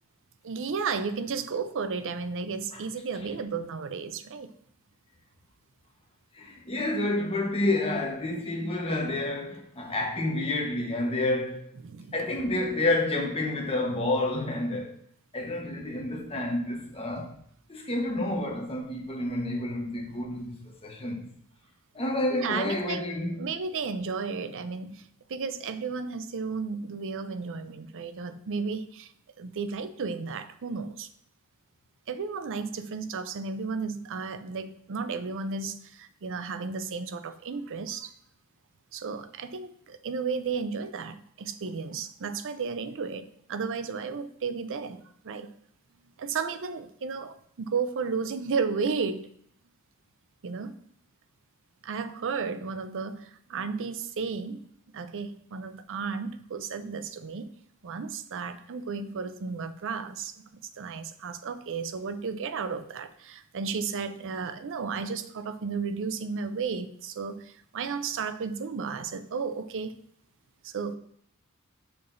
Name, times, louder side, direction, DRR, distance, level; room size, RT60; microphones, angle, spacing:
voice 1, 0.4-4.5 11.8-12.2 22.3-23.1 23.4-29.1 29.4-31.1 32.1-38.1 38.9-45.5 46.2-49.3 50.4-50.8 51.8-54.6 54.9-57.5 57.8-60.3 60.8-70.0 70.6-71.0, right 5 dB, 60° right, 0.5 m, -33 dB
voice 2, 6.3-11.6 12.1-14.9 15.3-17.3 17.7-21.3 21.9-23.5, left 2 dB, 25° left, 1.1 m, -29 dB
6.7 x 5.9 x 2.6 m
head